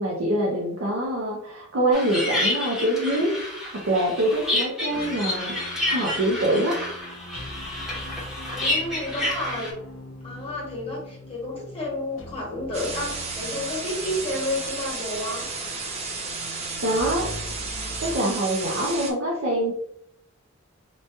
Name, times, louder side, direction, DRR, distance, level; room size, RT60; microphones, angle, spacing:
voice 1, 0.0-3.3 3.7-5.5 5.9-6.8 16.8-17.3 18.0-19.7, right 1 dB, 85° right, -3 dB, 0.6 m, -24 dB
sound 1, 1.9-9.7, left 1 dB, ahead, 0.8 m, -29 dB
sound 2, 4.9-18.2, left 1 dB, 70° left, 0.5 m, -42 dB
voice 2, 8.5-9.7 10.2-15.5, left 1 dB, 30° left, -4 dB, 1.1 m, -31 dB
sound 3, 12.7-19.1, right 3 dB, 30° right, 0.4 m, -33 dB
3.0 x 2.2 x 2.7 m, 0.72 s
head